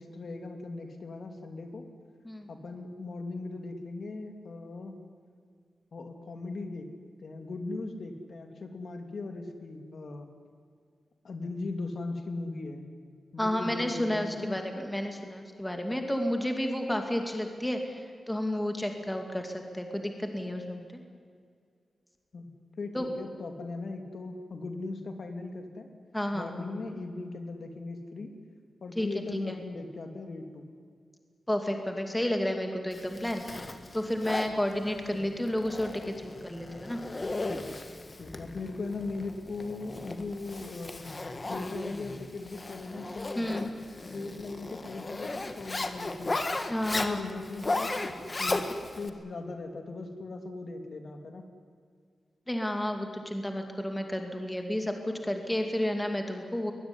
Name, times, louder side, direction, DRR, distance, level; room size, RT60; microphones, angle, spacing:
voice 1, 0.0-1.9 2.5-4.9 5.9-6.9 7.2-10.3 11.2-12.8 13.3-14.6 22.3-22.5 22.8-25.9 26.3-28.3 28.8-30.6 35.1-35.3 38.2-41.1 41.5-43.7 44.1-46.3 47.0-48.7 49.0-51.5, left 3 dB, 50° left, 5 dB, 2.7 m, -38 dB
voice 2, 13.4-21.0 22.9-23.0 26.1-26.5 29.0-29.1 31.5-37.0 43.3-43.6 46.7-47.2 52.5-56.7, left 1 dB, 5° left, 4 dB, 2.5 m, -31 dB
Zipper (clothing), 32.9-49.1, left 2 dB, 25° left, 1.6 m, -36 dB
22.0 x 21.0 x 9.9 m, 2.1 s
wide cardioid pair, 165°, 0 cm